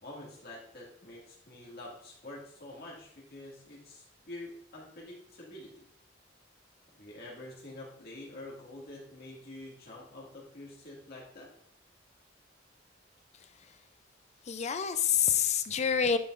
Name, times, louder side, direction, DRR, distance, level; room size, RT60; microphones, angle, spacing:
voice 1, 0.0-5.8 7.0-11.5, left 1 dB, 55° left, -4 dB, 2.1 m, -47 dB
voice 2, 13.3-13.8 14.4-16.2, left 7 dB, 35° left, 10 dB, 0.4 m, -28 dB
10.0 x 5.3 x 2.5 m, 0.64 s
head